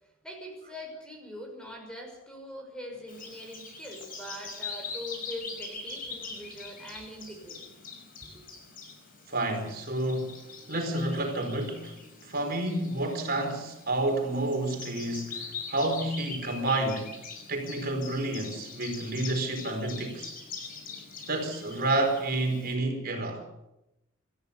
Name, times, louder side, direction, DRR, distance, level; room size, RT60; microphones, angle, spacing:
voice 1, 0.0-7.7 8.2-8.4, equal, 5° left, 5.8 m, -43 dB
Bird vocalization bird call bird song, 3.1-22.8, left 4 dB, 40° left, 6.0 m, -43 dB
voice 2, 9.3-10.4 10.7-11.9 12.2-17.1 17.5-20.3 21.3-23.4, right 2 dB, 45° right, 4.7 m, -29 dB
27.5 x 15.0 x 6.9 m
head